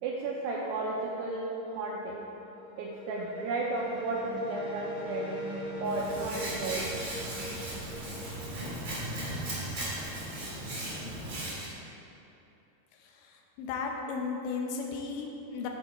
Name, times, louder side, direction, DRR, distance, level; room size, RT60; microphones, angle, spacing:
voice 1, 0.0-2.2 2.8-5.3 5.8-6.9, right 3 dB, 85° right, -3 dB, 2.4 m, -33 dB
sound 1, 1.9-9.5, equal, 50° left, 1.6 m, -41 dB
Hands, 5.8-11.7, right 1 dB, 55° right, 1.0 m, -37 dB
voice 2, 13.6-15.7, left 5 dB, 80° left, 2 dB, 2.9 m, -34 dB
11.0 x 5.6 x 4.2 m, 2.9 s
omnidirectional pair, 5.5 m